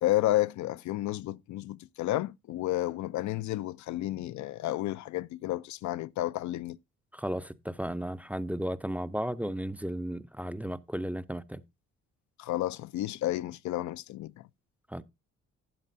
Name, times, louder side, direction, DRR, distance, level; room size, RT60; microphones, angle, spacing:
voice 1, 0.0-6.8 12.4-14.5, left 15 dB, 70° left, 0.4 m, -31 dB
voice 2, 7.1-11.6 14.9-15.0, equal, 5° right, 0.5 m, -34 dB
13.0 x 8.3 x 2.6 m
cardioid pair, 90°, 30 cm